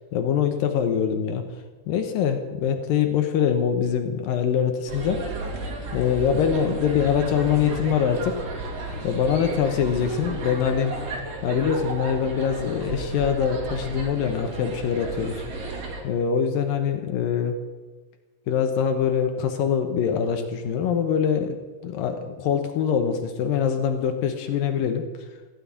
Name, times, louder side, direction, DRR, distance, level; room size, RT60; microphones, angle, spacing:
voice 1, 0.1-1.4 1.9-5.2 5.9-8.4 9.0-15.7 16.0-17.6 18.5-21.6 21.8-25.0, left 7 dB, 80° left, 6 dB, 2.0 m, -24 dB
sound 1, 4.9-16.0, right 2 dB, 40° right, 2.7 m, -33 dB
16.5 x 7.8 x 10.0 m, 1.3 s
omnidirectional pair, 5.6 m